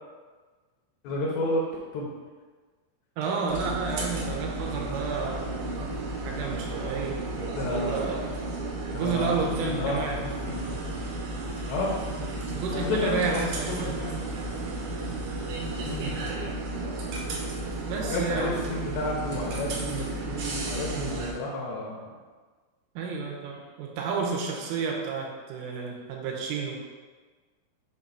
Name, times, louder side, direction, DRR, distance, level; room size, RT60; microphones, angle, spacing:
voice 1, 1.0-1.6 1.9-2.1 7.6-8.1 9.0-10.6 11.7-12.2 12.7-13.4 13.7-14.1 15.8-16.2 18.1-22.0, left 2 dB, 80° left, -3 dB, 2.6 m, -31 dB
voice 2, 3.2-5.5 6.2-7.2 7.9-8.2 8.9-10.2 12.2-13.9 17.9-18.5 23.0-26.8, right 5 dB, 90° right, -1 dB, 3.5 m, -31 dB
sound 1, 3.5-21.3, right 2 dB, 75° right, 2.4 m, -33 dB
7.6 x 2.5 x 5.5 m, 1.4 s
omnidirectional pair, 5.6 m